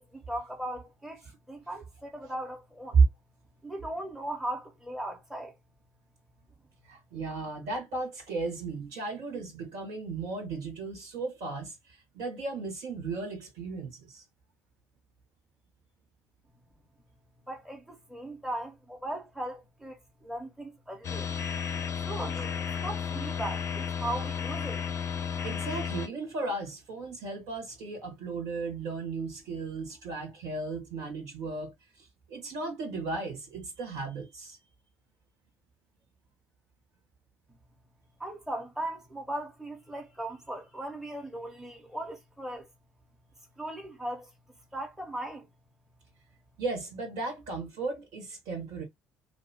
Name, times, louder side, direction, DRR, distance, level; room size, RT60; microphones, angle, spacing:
voice 1, 0.1-1.2 1.5-3.0 3.6-5.5 17.5-21.3 22.0-24.8 38.2-42.7 43.6-44.3 44.7-45.5, right 1 dB, 5° right, 1.1 m, -38 dB
voice 2, 6.8-14.2 25.4-34.6 46.6-48.8, right 4 dB, 65° right, 1.8 m, -34 dB
sound 1, 21.0-26.1, left 7 dB, 45° left, 0.5 m, -33 dB
3.1 x 2.6 x 2.9 m
figure-of-eight pair, 50°, 7 cm